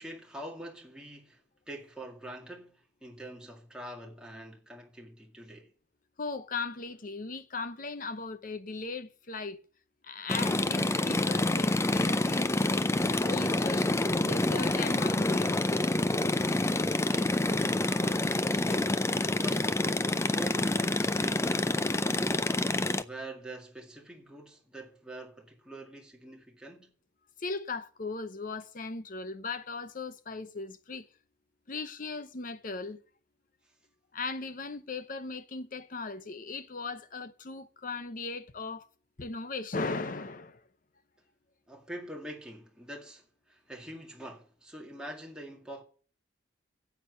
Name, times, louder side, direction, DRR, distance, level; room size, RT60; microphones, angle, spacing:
voice 1, 0.0-5.7 17.0-19.1 19.4-22.4 22.7-26.9 41.7-45.8, right 1 dB, 5° right, 2.0 m, -45 dB
voice 2, 6.2-9.6 10.0-12.5 13.0-15.6 27.4-31.1 31.7-33.0 34.1-38.9 39.2-40.6, left 3 dB, 45° left, 0.8 m, -38 dB
sound 1, 10.3-23.0, left 2 dB, 15° left, 0.4 m, -27 dB
10.0 x 8.2 x 6.7 m
head